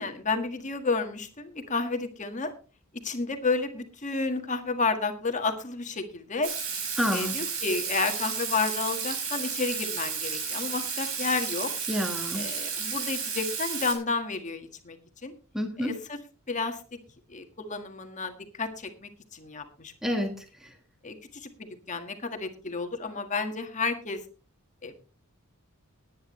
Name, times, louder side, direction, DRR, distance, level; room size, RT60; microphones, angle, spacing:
voice 1, 0.0-2.5 3.0-6.5 7.1-11.7 12.3-15.0 15.2-15.3 15.8-16.2 16.5-16.8 17.3-19.9 21.0-24.2 24.8-25.0, left 4 dB, 35° left, 5 dB, 1.7 m, -31 dB
Water tap faucet / Sink (filling or washing), 6.4-13.9, right 6 dB, 70° right, 5.0 m, -32 dB
voice 2, 7.0-7.4 11.9-12.5 15.5-15.9 20.0-20.7, equal, ahead, 4 dB, 1.7 m, -29 dB
19.5 x 9.7 x 3.2 m, 0.35 s
head